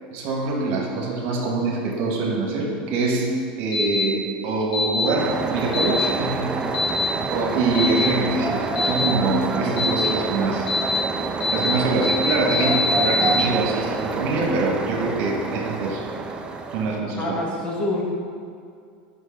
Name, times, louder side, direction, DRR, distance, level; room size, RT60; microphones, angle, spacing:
voice 1, 0.1-3.3 3.6-6.6 7.3-10.7 11.5-16.0 16.7-17.3, right 3 dB, 55° right, 0 dB, 1.6 m, -24 dB
sound 1, 3.7-4.0 4.7-5.0 5.7-6.0 6.7-7.0 7.7-8.1 8.8-9.1 9.8-10.1 10.7-11.0 11.4-11.7 12.0-13.4, left 3 dB, 75° left, 2.0 m, -23 dB
sound 2, 5.2-17.0, right 3 dB, 20° right, 0.5 m, -28 dB
voice 2, 17.2-18.0, left 2 dB, 20° left, -4 dB, 1.8 m, -27 dB
6.4 x 5.7 x 5.8 m, 2.3 s
supercardioid pair, 125°, 5 cm